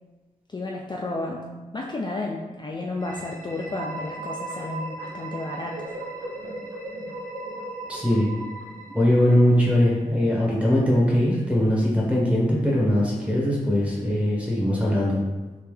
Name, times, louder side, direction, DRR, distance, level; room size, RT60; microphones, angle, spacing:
voice 1, 0.5-5.9, left 2 dB, 30° left, -1 dB, 0.4 m, -32 dB
sound 1, 3.0-9.7, right 2 dB, 75° right, 0.7 m, -37 dB
voice 2, 7.9-8.3 8.9-15.2, left 1 dB, 10° right, -4 dB, 1.1 m, -21 dB
3.5 x 2.9 x 3.2 m, 1.2 s
cardioid pair, 65°, 14 cm